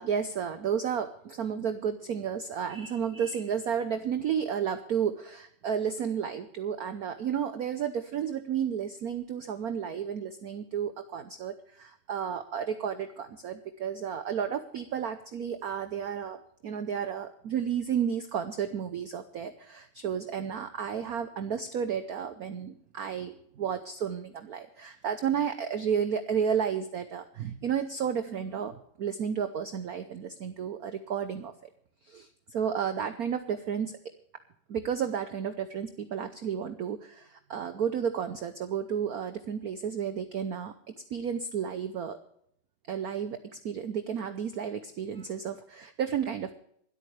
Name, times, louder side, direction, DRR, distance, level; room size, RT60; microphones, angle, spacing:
voice 1, 0.0-31.5 32.0-34.0 34.7-40.7 41.1-42.2 42.9-43.4 43.6-46.5, right 8 dB, 60° right, 10 dB, 1.0 m, -32 dB
26.5 x 8.8 x 3.3 m, 0.70 s
omnidirectional pair, 2.4 m